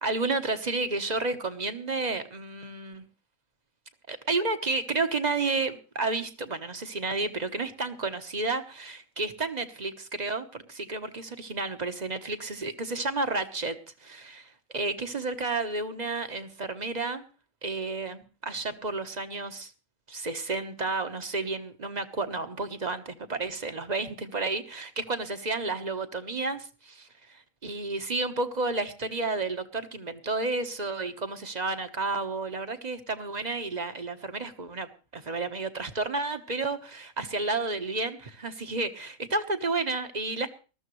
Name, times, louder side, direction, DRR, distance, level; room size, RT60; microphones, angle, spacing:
voice 1, 0.0-3.0 4.1-17.2 17.6-19.7 20.1-40.5, right 3 dB, 35° right, 9 dB, 1.2 m, -31 dB
20.0 x 13.5 x 3.2 m, 0.34 s
omnidirectional pair, 1.4 m